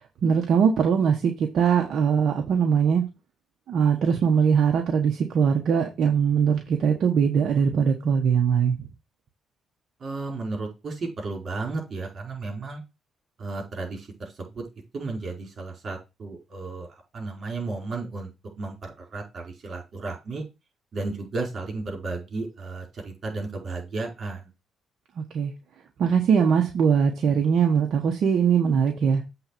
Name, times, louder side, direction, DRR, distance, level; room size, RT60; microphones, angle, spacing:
voice 1, 0.2-3.0 3.7-8.9 25.2-25.5 26.0-29.2, right 7 dB, 65° right, 1.4 m, -21 dB
voice 2, 10.0-12.8 13.4-14.1 14.4-14.6 14.9-16.9 17.1-18.3 18.6-20.4 20.9-24.5, right 3 dB, 45° right, 4.9 m, -33 dB
7.8 x 4.0 x 6.0 m
cardioid pair, 90°, 0 cm